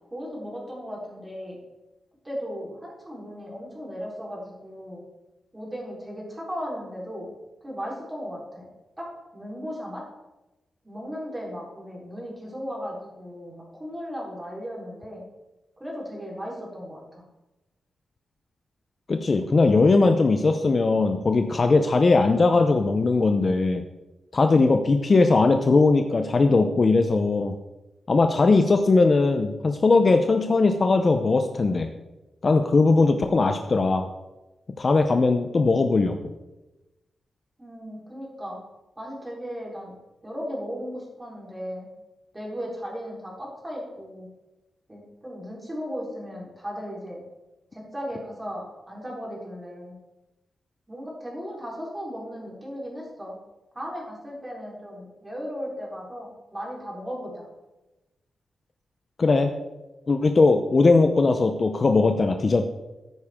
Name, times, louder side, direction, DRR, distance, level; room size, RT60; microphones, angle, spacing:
voice 1, 0.1-1.6 2.2-5.0 5.5-7.3 7.6-8.7 9.0-9.1 9.3-10.0 10.8-15.2 15.8-17.3 37.6-38.6 39.0-39.9 40.2-41.9 42.3-44.3 44.9-47.2 47.7-49.9 50.9-53.4 53.7-57.5, equal, 15° right, -4 dB, 3.9 m, -36 dB
voice 2, 19.1-23.8 24.3-27.5 28.1-31.9 32.4-34.1 34.8-36.1 59.2-59.5 60.1-62.7, left 3 dB, 35° left, 6 dB, 0.6 m, -19 dB
13.5 x 9.7 x 3.6 m, 1.0 s
wide cardioid pair, 150°, 0 cm